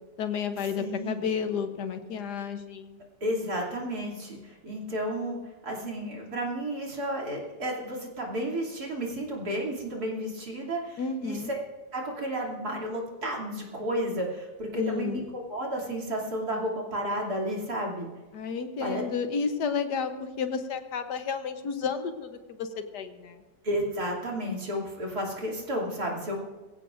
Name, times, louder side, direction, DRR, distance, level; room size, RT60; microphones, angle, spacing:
voice 1, 0.2-3.0 11.0-11.5 14.7-15.2 18.3-23.4, left 6 dB, 70° left, 7 dB, 1.5 m, -31 dB
voice 2, 0.8-1.2 3.2-5.4 5.6-11.6 11.9-18.1 18.8-19.0 23.6-26.4, equal, 60° right, -2 dB, 3.4 m, -32 dB
22.0 x 16.0 x 2.6 m, 1.2 s
omnidirectional pair, 1.9 m